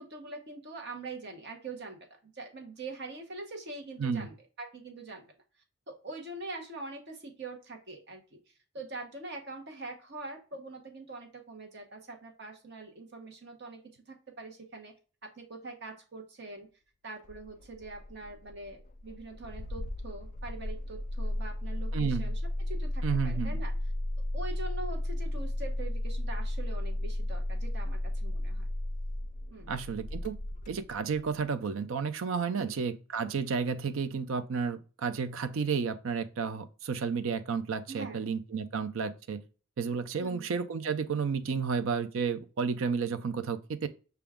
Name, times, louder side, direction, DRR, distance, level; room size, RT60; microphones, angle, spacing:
voice 1, 0.0-5.3 5.9-8.4 8.7-13.8 14.1-14.9 15.2-16.7 17.0-22.4 22.7-23.7 24.3-28.6 29.5-29.7 32.5-32.7 37.9-38.2 40.2-40.5, right 3 dB, 55° right, 0.9 m, -43 dB
Engine starting, 17.2-31.4, left 1 dB, 35° left, 0.4 m, -34 dB
voice 2, 21.9-22.3 23.0-23.6 29.7-30.4 30.7-39.4 39.8-43.9, right 5 dB, 75° right, 0.4 m, -32 dB
5.9 x 2.3 x 3.5 m
head